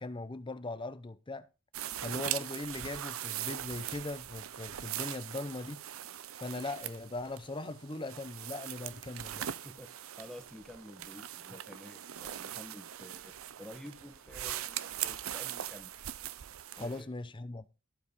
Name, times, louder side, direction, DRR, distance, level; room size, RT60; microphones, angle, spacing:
voice 1, 0.0-1.5 2.0-5.8 6.4-9.5 16.8-17.7, left 2 dB, 25° left, 0.7 m, -40 dB
sound 1, 1.7-17.0, right 11 dB, 80° right, 0.6 m, -41 dB
voice 2, 10.2-15.9 16.7-17.1, left 1 dB, ahead, 1.4 m, -50 dB
14.0 x 4.9 x 5.3 m
head